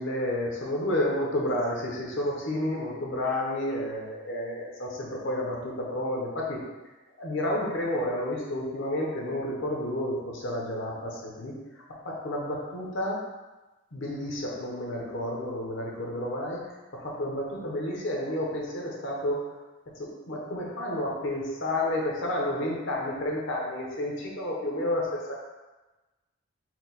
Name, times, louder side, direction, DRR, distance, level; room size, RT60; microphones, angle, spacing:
voice 1, 0.0-6.6 7.2-13.2 13.9-19.6 20.0-25.3, left 1 dB, 60° left, -2 dB, 0.8 m, -31 dB
4.4 x 2.2 x 4.0 m, 1.1 s
head